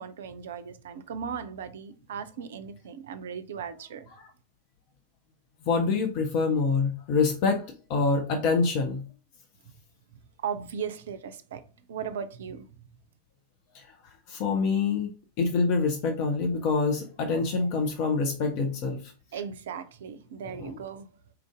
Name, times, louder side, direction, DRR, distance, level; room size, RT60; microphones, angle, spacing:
voice 1, 0.0-4.1 10.4-11.6 11.9-12.6 19.3-21.1, right 7 dB, 60° right, 0.4 m, -37 dB
voice 2, 5.7-9.0 13.7-13.9 14.3-19.1 20.5-20.7, left 4 dB, 45° left, 0.6 m, -26 dB
4.5 x 2.5 x 3.5 m
figure-of-eight pair, 90°, 0 cm